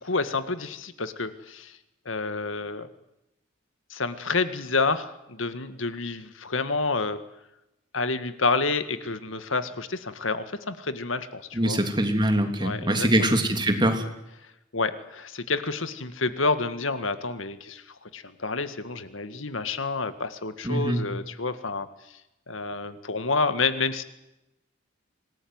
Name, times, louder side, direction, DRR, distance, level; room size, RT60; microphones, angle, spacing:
voice 1, 0.0-1.8 2.1-2.9 3.9-7.2 7.9-11.8 12.6-13.1 14.7-17.8 18.1-21.9 22.5-24.0, left 3 dB, 85° left, 11 dB, 1.9 m, -29 dB
voice 2, 11.5-14.1 20.6-21.0, right 1 dB, 25° right, 5 dB, 3.1 m, -23 dB
26.0 x 19.5 x 9.6 m, 0.91 s
head